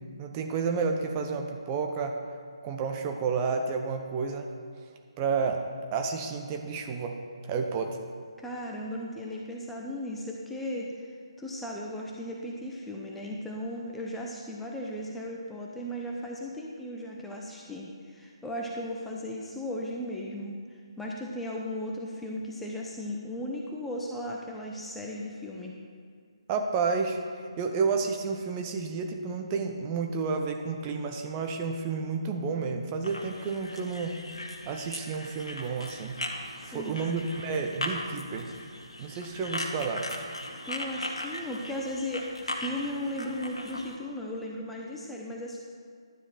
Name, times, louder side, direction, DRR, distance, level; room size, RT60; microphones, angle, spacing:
voice 1, 0.2-2.2 2.6-4.5 5.2-5.6 5.9-7.2 7.5-8.0 26.5-34.2 34.7-36.2 36.6-38.5 39.0-40.1, right 5 dB, 25° right, 4 dB, 0.9 m, -30 dB
voice 2, 8.4-11.1 11.4-25.8 36.6-37.0 40.6-45.6, left 1 dB, 5° left, -2 dB, 0.8 m, -36 dB
sound 1, 33.0-44.0, left 1 dB, 75° left, 1.7 m, -38 dB
12.0 x 9.7 x 4.5 m, 2.2 s
figure-of-eight pair, 145°, 3 cm